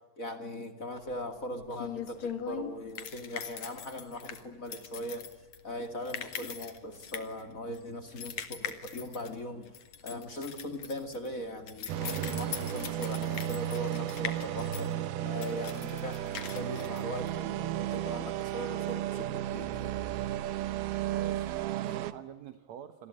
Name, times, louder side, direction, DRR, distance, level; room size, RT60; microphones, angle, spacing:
voice 1, 0.2-5.3 5.6-19.9, equal, 25° left, 8 dB, 2.0 m, -40 dB
sound 1, 1.0-17.7, left 8 dB, 50° left, 2.9 m, -42 dB
sound 2, 11.9-22.1, right 12 dB, 80° right, 3.0 m, -34 dB
voice 2, 21.1-23.1, right 11 dB, 60° right, 10 dB, 2.0 m, -45 dB
28.0 x 21.0 x 9.9 m, 1.1 s
omnidirectional pair, 4.5 m